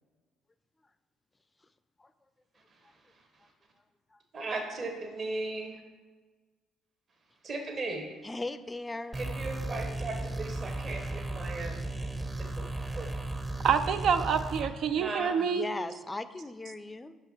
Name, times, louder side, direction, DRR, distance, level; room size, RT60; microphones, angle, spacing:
voice 1, 4.3-5.8 7.4-8.1 9.1-11.8 13.0-13.1 14.9-15.3, right 2 dB, 45° right, 2 dB, 1.3 m, -36 dB
voice 2, 8.2-9.2 15.3-17.2, left 2 dB, 20° left, 13 dB, 0.5 m, -38 dB
sound 1, 9.1-14.7, right 2 dB, 20° right, 0.7 m, -35 dB
voice 3, 13.6-15.7, right 7 dB, 60° right, 9 dB, 0.4 m, -27 dB
5.8 x 5.6 x 5.6 m, 1.3 s
hypercardioid pair, 60°, 0 cm